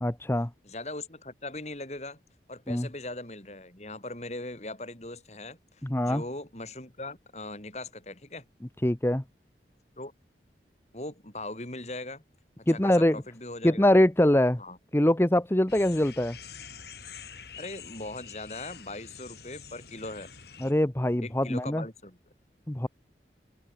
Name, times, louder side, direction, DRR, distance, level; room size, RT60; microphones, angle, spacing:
voice 1, 0.0-0.5 2.7-2.9 5.8-6.2 8.8-9.2 12.7-13.2 13.6-14.6 14.9-16.4 20.6-21.8 22.7-22.9, left 1 dB, 15° left, 0.7 m, -23 dB
voice 2, 0.6-2.2 2.5-8.4 10.0-10.1 10.9-12.2 12.7-13.9 14.6-14.8 17.6-20.3 21.2-22.2, left 2 dB, 40° left, 4.8 m, -40 dB
sound 1, 15.7-20.7, left 7 dB, 65° left, 5.4 m, -46 dB
open air
head